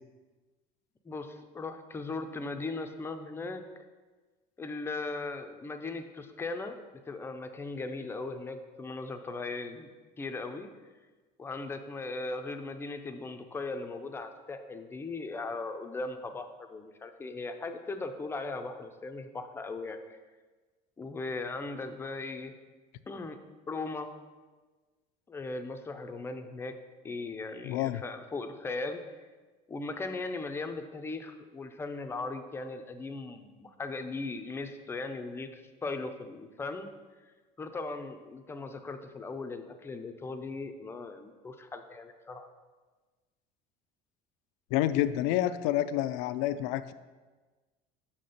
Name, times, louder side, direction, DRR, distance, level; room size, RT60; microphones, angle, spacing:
voice 1, 1.1-3.6 4.6-6.8 7.1-9.9 10.2-10.7 11.4-20.2 21.0-22.5 23.1-23.4 23.7-24.1 25.3-26.7 27.0-29.0 29.7-36.9 37.6-42.5, left 3 dB, 15° left, 7 dB, 0.5 m, -38 dB
voice 2, 27.6-28.0 44.7-46.9, left 13 dB, 85° left, 12 dB, 0.4 m, -28 dB
6.0 x 4.3 x 6.4 m, 1.3 s
cardioid pair, 150°, 17 cm